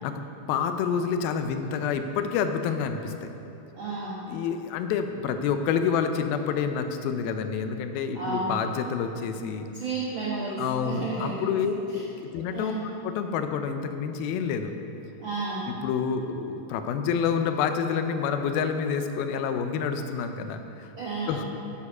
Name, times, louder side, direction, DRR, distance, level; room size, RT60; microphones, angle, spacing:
voice 1, 0.0-3.3 4.3-9.7 10.6-12.7 13.0-14.7 15.7-20.9 21.3-21.4, left 6 dB, 85° left, 7 dB, 2.5 m, -28 dB
voice 2, 3.7-4.3 8.1-8.6 9.7-11.5 11.9-12.0 12.4-12.9 15.2-15.7 21.0-21.4, right 3 dB, 70° right, -7 dB, 1.2 m, -32 dB
13.0 x 7.2 x 5.5 m, 2.9 s
omnidirectional pair, 4.3 m